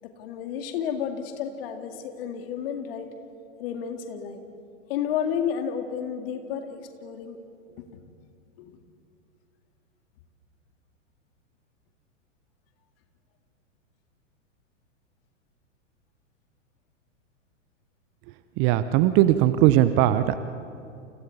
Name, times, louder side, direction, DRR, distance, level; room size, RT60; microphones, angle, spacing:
voice 1, 0.0-3.1 3.6-4.4 4.9-7.4 8.6-8.8, left 8 dB, 50° left, 6 dB, 2.3 m, -31 dB
voice 2, 18.6-20.4, right 13 dB, 30° right, 13 dB, 0.8 m, -19 dB
30.0 x 29.0 x 4.2 m, 2.4 s
figure-of-eight pair, 100°, 38 cm